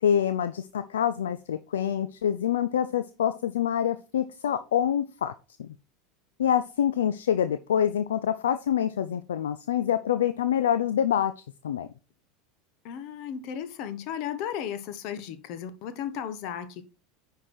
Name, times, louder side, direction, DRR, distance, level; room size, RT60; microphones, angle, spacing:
voice 1, 0.0-5.3 5.6-5.7 6.4-11.9, left 9 dB, 70° left, 0.4 m, -26 dB
voice 2, 12.8-16.9, left 9 dB, 50° left, 1.1 m, -35 dB
9.8 x 4.7 x 4.3 m
figure-of-eight pair, 80°, 0 cm